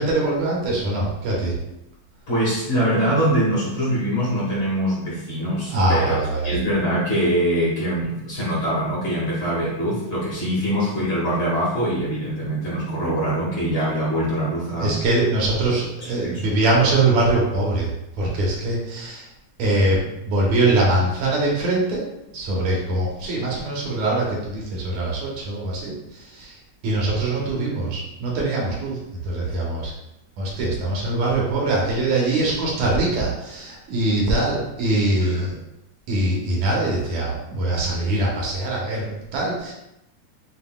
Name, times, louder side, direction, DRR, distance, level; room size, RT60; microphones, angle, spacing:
voice 1, 0.0-1.5 5.7-6.5 14.8-17.9 18.2-19.3 19.6-20.0 20.2-22.0 22.3-26.6 26.8-29.0 29.2-29.9 30.4-35.6 36.1-39.7, right 2 dB, 75° right, -3 dB, 2.2 m, -22 dB
voice 2, 2.3-6.2 6.4-15.0 16.2-16.4 35.2-35.4, equal, 55° left, -7 dB, 1.7 m, -23 dB
7.4 x 2.6 x 2.2 m, 0.87 s
omnidirectional pair, 3.3 m